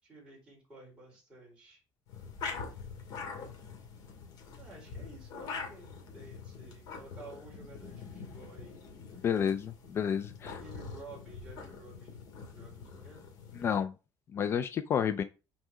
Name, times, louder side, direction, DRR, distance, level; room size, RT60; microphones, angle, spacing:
voice 1, 0.0-1.8 4.6-8.8 9.1-9.5 10.4-12.2 12.5-13.3, right 2 dB, 10° right, 4.1 m, -52 dB
sound 1, 2.1-13.8, left 5 dB, 55° left, 2.3 m, -44 dB
voice 2, 9.2-10.5 13.6-13.9 14.3-15.2, left 8 dB, 30° left, 0.4 m, -30 dB
6.3 x 4.7 x 4.9 m
cardioid pair, 170°, 8 cm